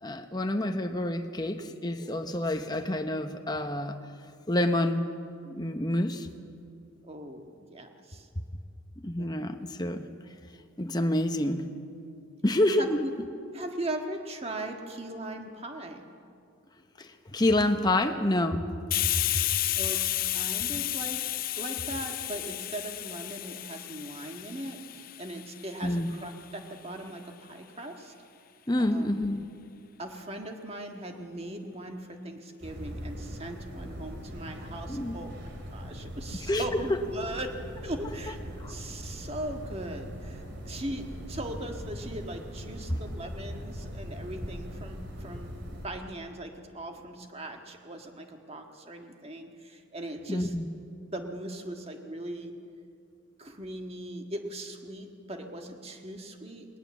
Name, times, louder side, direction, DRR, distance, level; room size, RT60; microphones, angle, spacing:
voice 1, 0.0-4.0 4.5-5.1 5.4-6.3 9.0-10.1 10.8-11.7 12.4-13.0 17.0-18.7 25.8-26.1 28.7-29.5 34.9-35.2 36.5-36.6 36.9-37.0 38.6-38.8 42.9-43.0 50.3-50.7, left 1 dB, 20° left, 6 dB, 0.9 m, -28 dB
voice 2, 7.0-8.3 9.2-9.3 12.8-13.1 13.5-16.0 19.6-21.2 21.6-28.1 28.8-29.3 30.0-35.3 35.7-37.6 37.8-38.4 38.6-45.5 45.8-50.5 51.1-52.6 53.4-56.7, right 1 dB, 30° right, 4 dB, 1.7 m, -39 dB
Hiss, 18.9-26.3, left 15 dB, 40° left, 0.4 m, -32 dB
sound 1, 32.6-45.9, equal, 55° right, 2.9 m, -41 dB
19.5 x 19.0 x 7.3 m, 2.4 s
head